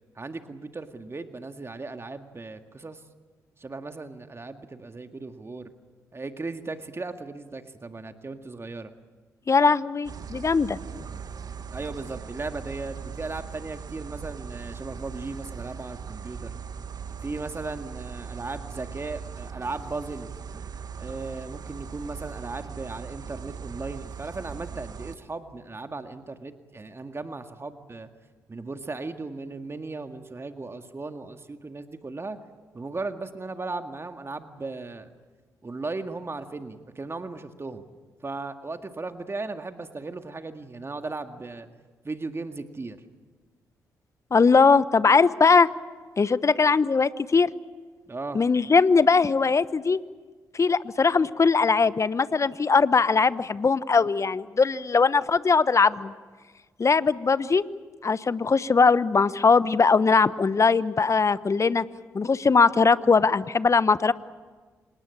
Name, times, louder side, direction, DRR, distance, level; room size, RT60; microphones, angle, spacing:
voice 1, 0.2-3.0 3.6-5.7 6.1-8.9 11.7-16.5 17.2-20.3 21.0-28.1 28.5-32.4 32.7-35.1 35.6-37.8 38.2-41.7 42.0-43.0 48.1-48.4, right 3 dB, 30° right, 7 dB, 1.9 m, -36 dB
voice 2, 9.5-10.8 44.3-45.7 46.2-47.5 48.3-50.0 50.5-56.1 56.8-57.6 58.0-61.8 62.1-64.1, left 4 dB, 40° left, 16 dB, 1.0 m, -20 dB
sound 1, 10.0-25.2, right 6 dB, 50° right, 1.6 m, -39 dB
27.0 x 20.0 x 8.6 m, 1.4 s
hypercardioid pair, 40°, 8 cm